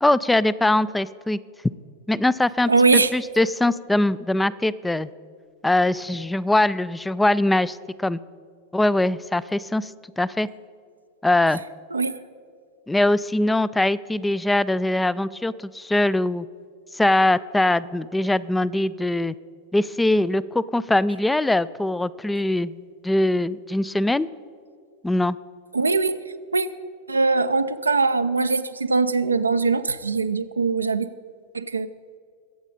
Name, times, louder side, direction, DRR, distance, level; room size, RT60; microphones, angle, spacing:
voice 1, 0.0-1.4 2.1-5.1 5.6-8.2 8.7-9.9 10.2-10.5 11.2-11.6 12.9-16.5 16.9-19.3 19.7-24.3 25.0-25.4, left 1 dB, 5° left, 19 dB, 0.3 m, -22 dB
voice 2, 2.7-3.1 11.9-12.2 25.7-26.2 26.5-26.7 27.1-31.1 31.5-31.9, right 4 dB, 80° right, 10 dB, 0.4 m, -21 dB
23.5 x 8.0 x 4.1 m, 2.2 s
figure-of-eight pair, 90°, 0 cm